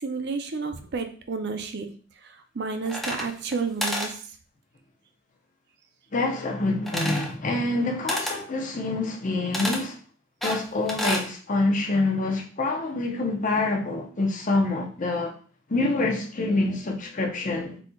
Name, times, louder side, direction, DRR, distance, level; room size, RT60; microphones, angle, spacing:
voice 1, 0.0-1.9 2.6-4.1, right 4 dB, 50° right, 0.5 m, -30 dB
sound 1, 2.9-3.6 3.8-4.1 6.9-7.3 8.1-8.4 9.5-9.8 10.4-11.3, equal, ahead, 0.6 m, -29 dB
voice 2, 6.1-10.0 10.4-15.3 15.7-17.8, left 2 dB, 40° left, 0.7 m, -26 dB
4.3 x 4.2 x 2.3 m
head